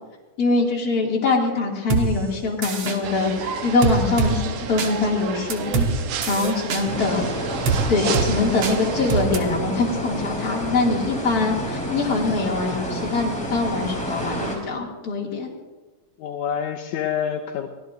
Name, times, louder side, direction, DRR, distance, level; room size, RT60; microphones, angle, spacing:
voice 1, 0.4-5.9 6.3-7.3 7.9-15.5, left 3 dB, 30° left, -3 dB, 2.6 m, -23 dB
sound 1, 1.9-2.0 2.6-3.0 3.8-4.3 4.8-4.9 5.5-5.9 6.2-6.8 7.7-7.8 8.1-8.3 8.6-8.8 9.1-9.4, right 5 dB, 55° right, 1.9 m, -23 dB
sound 2, 3.0-9.2, right 6 dB, 80° right, 2.6 m, -31 dB
sound 3, 6.8-14.6, equal, ahead, 3.0 m, -29 dB
voice 2, 16.2-17.7, left 8 dB, 75° left, 4 dB, 2.1 m, -27 dB
23.5 x 17.0 x 2.6 m, 1.2 s
omnidirectional pair, 3.7 m